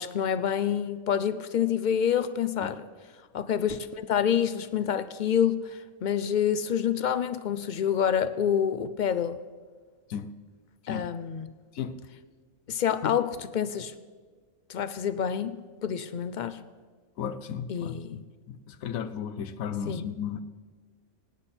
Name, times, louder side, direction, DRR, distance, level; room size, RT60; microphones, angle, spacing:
voice 1, 0.0-2.8 3.3-9.4 10.9-11.5 12.7-13.9 14.7-15.6 15.8-16.6 17.7-18.2 19.9-20.1, left 8 dB, 70° left, 13 dB, 0.4 m, -27 dB
voice 2, 17.2-18.2 18.5-20.4, left 8 dB, 90° left, 12 dB, 1.2 m, -34 dB
24.0 x 9.7 x 4.3 m, 1.5 s
omnidirectional pair, 1.4 m